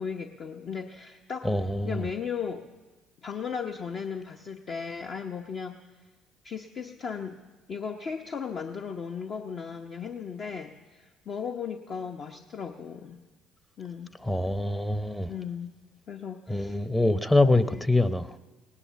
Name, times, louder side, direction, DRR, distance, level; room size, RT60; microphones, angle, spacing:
voice 1, 0.0-1.5 1.8-2.7 3.2-5.8 6.4-7.4 7.7-13.2 13.8-14.1 15.3-15.7 16.1-16.8 17.3-17.8, left 6 dB, 50° left, 0.9 m, -36 dB
voice 2, 1.4-2.0 14.2-15.3 16.5-18.4, left 2 dB, 10° left, 0.8 m, -24 dB
18.5 x 9.8 x 7.0 m
hypercardioid pair, 55°, 0 cm